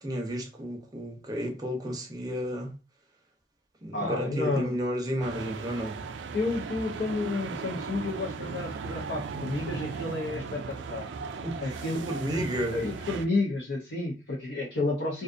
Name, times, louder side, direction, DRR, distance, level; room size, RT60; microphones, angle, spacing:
voice 1, 0.0-2.8 3.8-6.0 11.4-12.8, equal, 20° right, 0.6 m, -32 dB
voice 2, 3.9-4.7 6.3-11.1 11.6-12.1 12.7-15.2, left 2 dB, 70° left, 0.6 m, -31 dB
sound 1, 5.2-13.3, right 5 dB, 85° right, 0.3 m, -37 dB
2.5 x 2.3 x 2.4 m
head